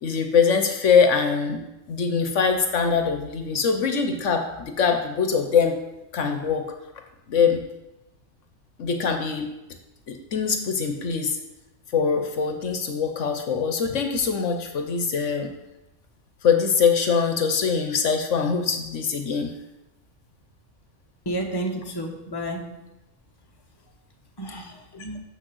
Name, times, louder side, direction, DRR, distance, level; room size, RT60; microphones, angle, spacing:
voice 1, 0.0-5.8 6.1-6.6 7.3-7.6 8.8-9.5 10.1-11.4 11.9-15.5 16.4-19.5 24.9-25.0, left 6 dB, 70° left, 6 dB, 1.1 m, -23 dB
voice 2, 21.2-22.7 24.4-25.2, right 1 dB, 20° left, 1 dB, 1.1 m, -31 dB
6.8 x 6.4 x 6.2 m, 0.97 s
omnidirectional pair, 1.4 m